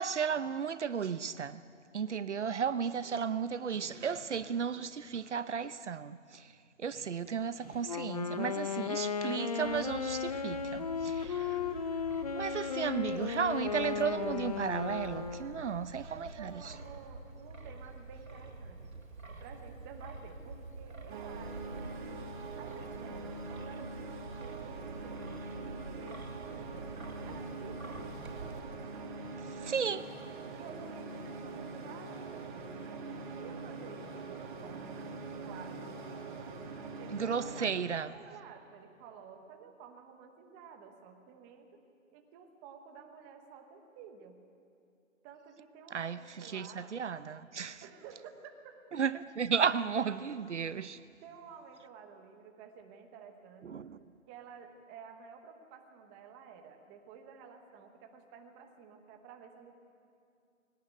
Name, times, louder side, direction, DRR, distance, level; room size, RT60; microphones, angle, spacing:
voice 1, 0.0-1.6 1.9-6.5 6.8-11.7 12.3-16.5 29.5-30.1 37.1-38.3 45.9-47.8 48.9-51.0 53.6-54.0, right 6 dB, 60° right, 0.8 m, -34 dB
Wind instrument woodwind instrument, 7.8-15.7, left 6 dB, 30° left, 0.6 m, -35 dB
Wind, 9.6-28.6, right 3 dB, 90° right, 3.8 m, -48 dB
voice 2, 15.3-18.9 19.4-22.3 22.6-26.9 27.2-28.8 30.6-35.1 35.4-36.6 37.0-41.7 42.1-44.4 45.2-47.0 47.8-48.5 51.2-53.7 54.3-59.7, right 6 dB, 10° right, 1.0 m, -52 dB
sound 1, 21.1-37.7, right 3 dB, 35° right, 2.5 m, -43 dB
22.0 x 18.0 x 9.2 m
hypercardioid pair, 155°, 40 cm